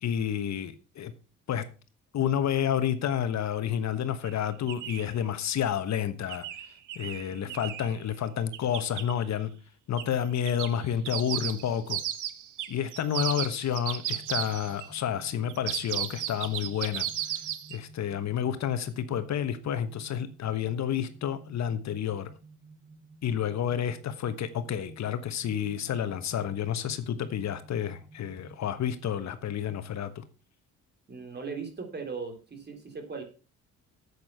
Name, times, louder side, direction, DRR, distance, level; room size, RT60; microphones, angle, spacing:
voice 1, 0.0-1.1 1.5-1.6 2.1-6.5 6.9-9.5 9.9-12.0 12.7-17.4 17.7-22.3 23.2-30.2, left 9 dB, 65° left, 11 dB, 1.3 m, -30 dB
sound 1, 4.2-4.3 4.7-5.1 6.3-7.9 8.5-9.1 10.0-10.1 10.5-14.9 15.5-17.8, right 12 dB, 85° right, 1.1 m, -34 dB
sound 2, 14.1-29.1, right 3 dB, 10° right, 4.9 m, -54 dB
voice 2, 31.1-33.2, right 5 dB, 35° right, 5 dB, 3.4 m, -38 dB
8.6 x 8.4 x 5.6 m, 0.34 s
cardioid pair, 90°, 30 cm